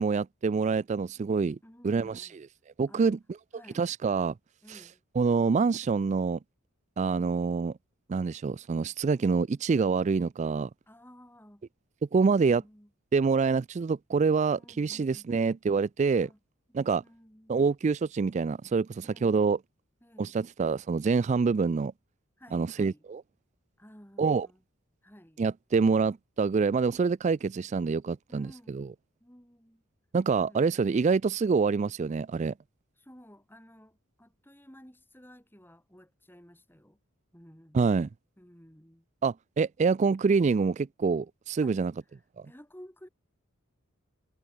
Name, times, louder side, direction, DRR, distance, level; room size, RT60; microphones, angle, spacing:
voice 1, 0.0-1.6 1.8-2.3 2.8-3.2 3.7-4.3 4.7-4.8 5.2-6.4 7.0-7.7 8.1-10.7 12.1-12.6 13.1-16.3 16.7-17.0 17.5-19.6 20.2-21.9 22.5-23.2 24.2-24.5 25.4-28.5 28.7-28.9 30.1-32.5 37.7-38.1 39.2-41.9, right 5 dB, 35° right, 0.3 m, -26 dB
voice 2, 1.6-2.4 2.9-3.2 3.5-3.9 4.6-5.0 7.1-7.5 10.9-11.7 12.2-12.9 14.5-15.3 16.2-16.4 16.7-17.7 19.0-19.4 20.0-20.4 22.4-23.0 23.8-24.6 25.0-25.4 28.3-28.8 29.2-29.8 30.3-31.2 33.0-37.0 37.3-37.8 38.4-39.0 41.6-43.1, equal, 10° left, 6.0 m, -54 dB
head